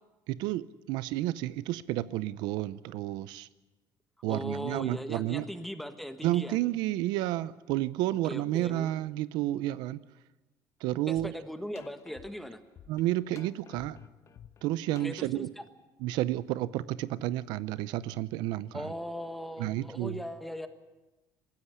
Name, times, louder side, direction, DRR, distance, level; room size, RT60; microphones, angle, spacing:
voice 1, 0.3-3.5 4.2-5.4 6.2-10.0 10.8-11.3 12.9-14.0 14.6-15.5 16.0-18.8 19.6-20.2, right 15 dB, 85° right, 17 dB, 0.6 m, -31 dB
voice 2, 4.3-6.6 8.2-8.9 11.1-12.6 15.0-15.6 18.7-20.7, equal, ahead, 8 dB, 1.4 m, -39 dB
sound 1, 11.2-11.3 11.8-15.4, left 8 dB, 40° left, 1.1 m, -51 dB
20.0 x 15.5 x 9.9 m, 1.1 s
cardioid pair, 135°, 7 cm